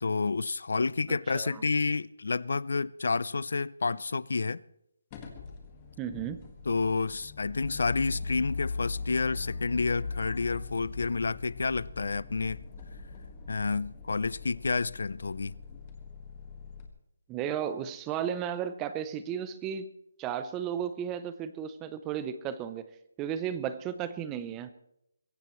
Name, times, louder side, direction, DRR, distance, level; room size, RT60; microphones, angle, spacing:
voice 1, 0.0-4.6 6.7-12.6 13.5-15.5, left 4 dB, 65° left, 0.4 m, -29 dB
sound 1, 5.1-16.9, left 4 dB, 20° left, 1.7 m, -40 dB
voice 2, 6.0-6.4 17.3-19.9 20.2-22.9 23.2-24.7, right 9 dB, 10° right, 0.6 m, -34 dB
23.0 x 16.0 x 3.1 m
hypercardioid pair, 175°, 0 cm